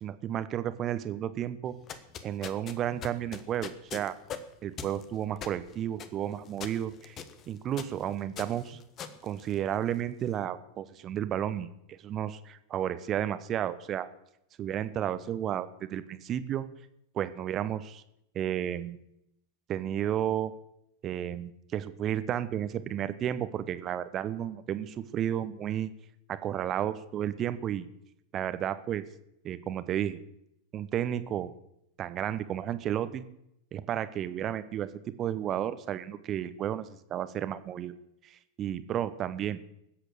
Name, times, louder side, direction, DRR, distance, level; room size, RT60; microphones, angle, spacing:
voice 1, 0.0-1.8 2.2-4.1 4.6-7.2 7.5-8.8 9.2-14.1 14.6-16.6 17.1-18.0 18.3-19.0 19.7-20.5 21.0-25.9 26.3-27.9 28.3-29.0 29.4-30.2 30.7-31.5 32.0-33.2 33.7-37.9 38.2-39.6, right 10 dB, 30° right, 13 dB, 1.0 m, -32 dB
sound 1, 1.7-10.1, left 7 dB, 30° left, 1.3 m, -43 dB
20.0 x 8.2 x 6.8 m, 0.80 s
figure-of-eight pair, 90°, 0 cm